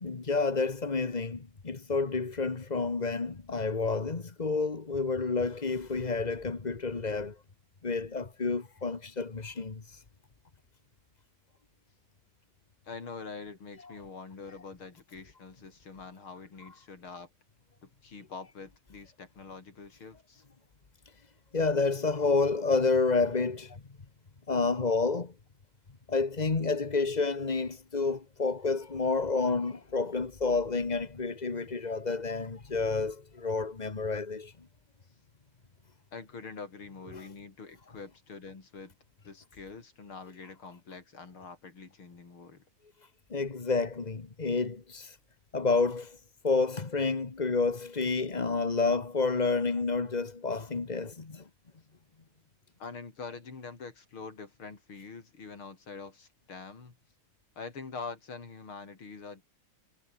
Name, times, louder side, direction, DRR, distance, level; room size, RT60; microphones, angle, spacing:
voice 1, 0.0-7.4 7.8-10.0 21.5-23.7 24.5-25.3 26.1-34.5 37.1-37.3 43.3-45.2 45.5-46.2 46.4-51.4, left 4 dB, 25° left, 1.2 m, -29 dB
voice 2, 12.8-17.3 17.8-20.4 23.7-23.8 25.1-25.2 36.1-38.9 39.2-42.6 52.8-57.0 57.6-59.4, left 4 dB, 85° left, 4.8 m, -45 dB
omnidirectional pair, 2.3 m